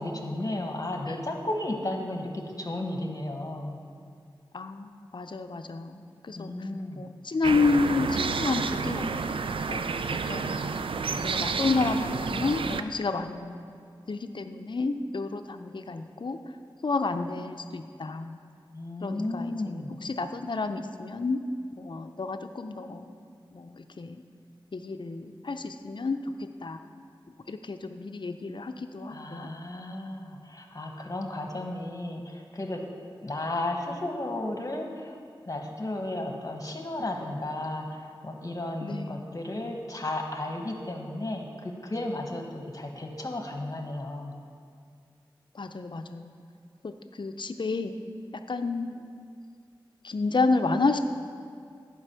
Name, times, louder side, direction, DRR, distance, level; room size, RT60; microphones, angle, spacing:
voice 1, 0.0-3.8 6.3-7.1 18.7-19.9 29.1-32.8 33.2-35.2 35.4-44.3, left 1 dB, 40° left, 3 dB, 1.3 m, -34 dB
voice 2, 4.5-6.5 6.9-9.4 9.7-9.9 10.3-10.7 11.2-13.6 14.1-16.4 16.8-18.4 19.0-19.5 20.0-21.4 21.8-23.1 23.5-24.2 24.7-26.8 27.5-29.6 38.8-39.3 45.5-46.3 46.8-47.9 48.5-49.1 50.0-51.0, left 3 dB, 60° left, 8 dB, 0.6 m, -30 dB
sound 1, 7.4-12.8, right 5 dB, 90° right, 0.4 m, -30 dB
11.0 x 5.2 x 6.8 m, 2.2 s
wide cardioid pair, 55°, 9 cm